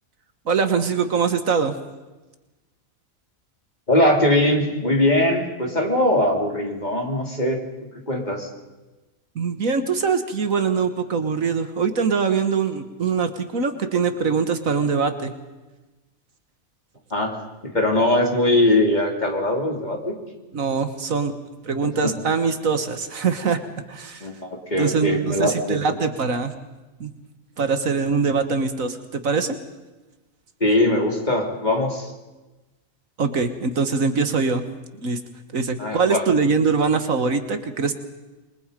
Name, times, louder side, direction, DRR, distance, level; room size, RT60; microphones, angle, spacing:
voice 1, 0.5-1.7 9.4-15.3 20.5-21.3 21.6-23.6 23.9-24.3 24.8-26.6 27.0-27.1 27.6-29.6 33.2-34.6 35.0-35.2 35.5-37.9, right 5 dB, 70° right, 8 dB, 1.9 m, -23 dB
voice 2, 3.9-8.5 17.1-17.3 17.6-20.1 22.0-22.1 24.2-26.0 30.6-32.1 35.8-36.2, left 1 dB, 30° left, 1 dB, 3.6 m, -21 dB
28.0 x 23.0 x 5.3 m, 1.1 s
omnidirectional pair, 1.5 m